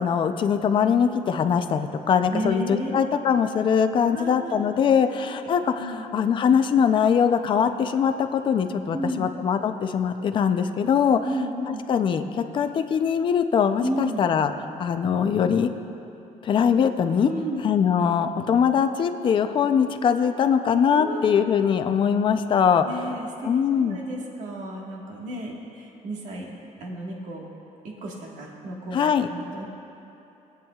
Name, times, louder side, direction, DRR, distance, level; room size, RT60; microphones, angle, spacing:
voice 1, 0.0-11.2 11.7-14.5 14.8-15.7 16.4-17.3 17.6-22.8 23.4-24.0 28.9-29.3, left 7 dB, 35° left, 8 dB, 0.5 m, -22 dB
voice 2, 2.3-3.1 4.1-4.6 5.4-5.5 5.8-6.0 8.9-9.3 11.2-11.8 13.8-14.2 17.2-17.6 20.9-21.2 22.8-26.5 26.8-27.4 28.0-29.6, equal, 60° right, -2 dB, 1.6 m, -33 dB
23.0 x 8.9 x 2.4 m, 2.9 s
cardioid pair, 175°, 14 cm